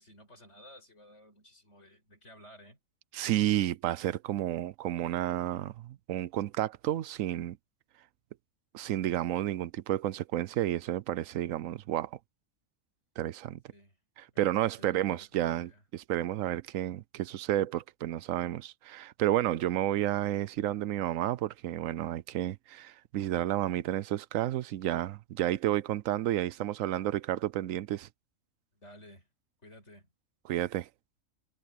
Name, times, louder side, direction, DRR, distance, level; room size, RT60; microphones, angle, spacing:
voice 1, 0.0-2.8 13.7-14.0 14.3-15.8 28.7-29.3 29.6-30.1, left 1 dB, 60° left, 7.1 m, -55 dB
voice 2, 3.1-7.6 8.7-12.1 13.2-13.6 14.4-28.1 30.5-30.9, right 13 dB, 85° right, 1.0 m, -31 dB
omnidirectional pair, 1.3 m